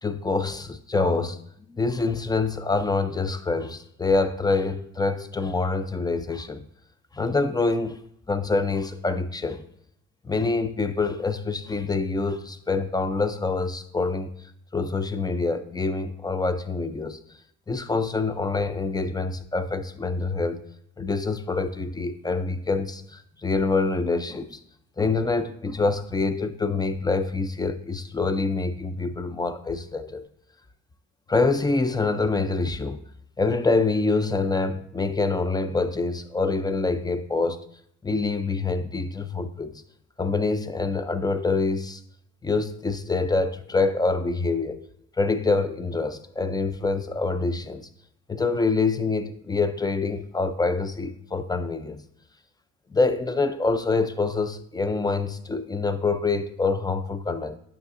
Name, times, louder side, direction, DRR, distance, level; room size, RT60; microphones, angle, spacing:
voice 1, 0.0-1.4 1.7-6.7 7.1-8.0 8.3-9.6 10.2-14.3 14.7-17.2 17.7-20.6 21.0-24.6 25.0-30.3 31.3-33.0 33.4-37.6 38.0-39.8 40.2-42.0 42.4-44.9 45.2-47.9 48.3-52.0 52.9-57.6, left 3 dB, 15° left, 0.4 m, -26 dB
9.5 x 5.8 x 2.5 m
cardioid pair, 90°, 30 cm